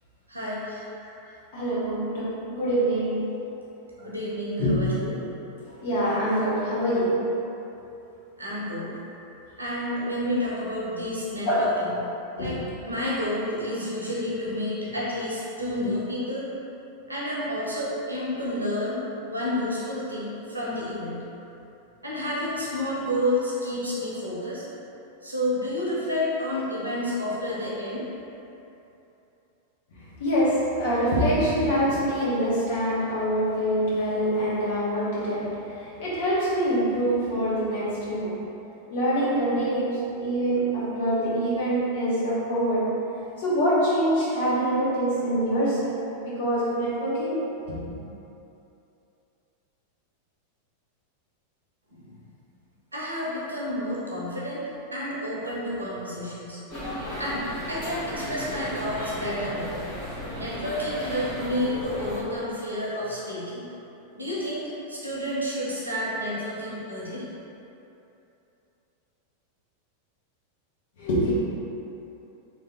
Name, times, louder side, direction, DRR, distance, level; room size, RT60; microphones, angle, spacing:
voice 1, 0.3-0.8 4.0-5.2 8.4-8.9 9.6-11.9 12.4-16.5 17.1-19.0 19.3-21.2 22.0-24.6 25.2-28.0 51.9-52.1 52.9-54.6 54.9-56.6 57.2-59.7 60.4-63.6 64.1-67.2, left 1 dB, 80° right, -7 dB, 1.0 m, -30 dB
voice 2, 1.5-3.3 4.6-4.8 5.8-7.2 9.0-9.1 11.4-11.7 12.4-12.5 30.2-38.4 38.9-42.9 43.4-47.4 47.7-47.8 71.0-71.3, equal, 55° left, -8 dB, 1.2 m, -25 dB
sound 1, 56.7-62.2, equal, 35° left, 1.5 m, -34 dB
3.4 x 3.0 x 3.9 m, 2.9 s
figure-of-eight pair, 90°, 0 cm